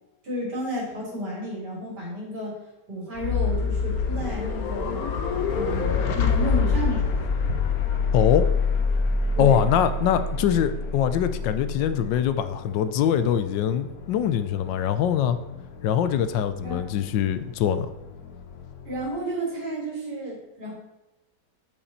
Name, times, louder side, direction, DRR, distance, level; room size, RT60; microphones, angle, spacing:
voice 1, 0.2-2.6 2.9-5.0 5.5-7.1 7.4-7.6 9.3-9.6 16.6-16.8 18.9-20.7, right 1 dB, 65° right, -4 dB, 3.9 m, -32 dB
sound 1, 3.2-19.1, left 4 dB, 65° left, 1.2 m, -27 dB
voice 2, 8.1-8.5 9.4-15.4 15.8-17.9, left 9 dB, 90° left, 11 dB, 1.3 m, -23 dB
8.7 x 7.0 x 4.1 m, 0.98 s
omnidirectional pair, 1.9 m